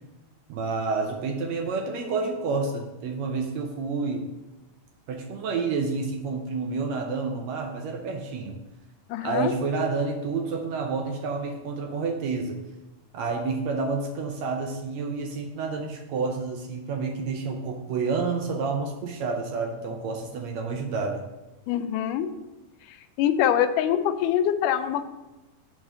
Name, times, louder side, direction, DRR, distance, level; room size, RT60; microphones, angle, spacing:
voice 1, 0.5-4.2 5.1-8.5 9.2-12.6 13.1-21.2, right 4 dB, 75° right, 3 dB, 1.7 m, -29 dB
voice 2, 9.1-9.5 21.7-22.3 23.2-25.1, left 10 dB, 85° left, 10 dB, 2.1 m, -24 dB
5.6 x 4.8 x 6.5 m, 1.1 s
omnidirectional pair, 3.6 m